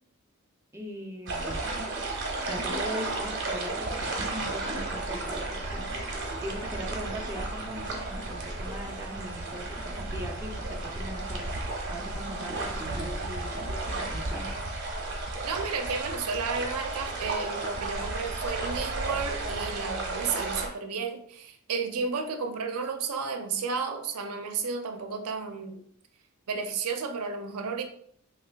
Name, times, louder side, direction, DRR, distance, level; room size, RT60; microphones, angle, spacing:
voice 1, 0.7-1.8 2.4-6.0 6.4-11.5 11.9-13.6 13.9-14.5, equal, 10° right, 0 dB, 0.4 m, -40 dB
sound 1, 1.2-5.1, left 1 dB, 75° left, 0.8 m, -51 dB
sound 2, 1.3-20.7, right 2 dB, 55° right, 0.7 m, -33 dB
voice 2, 15.4-25.8 26.5-27.8, right 5 dB, 85° right, 6 dB, 0.5 m, -32 dB
3.1 x 2.3 x 3.3 m, 0.65 s
head